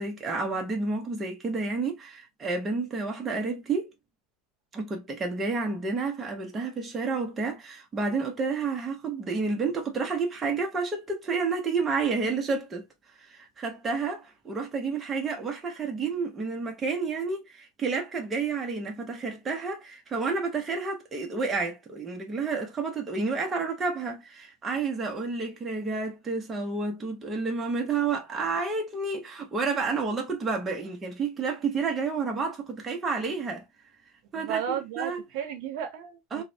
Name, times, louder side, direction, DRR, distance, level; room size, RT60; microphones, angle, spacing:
voice 1, 0.0-3.9 4.7-12.8 13.3-33.6 34.3-35.2 36.3-36.4, right 4 dB, 15° right, 0.6 m, -30 dB
voice 2, 34.3-36.4, right 8 dB, 60° right, 0.6 m, -33 dB
3.1 x 2.0 x 2.6 m
supercardioid pair, 165°, 0 cm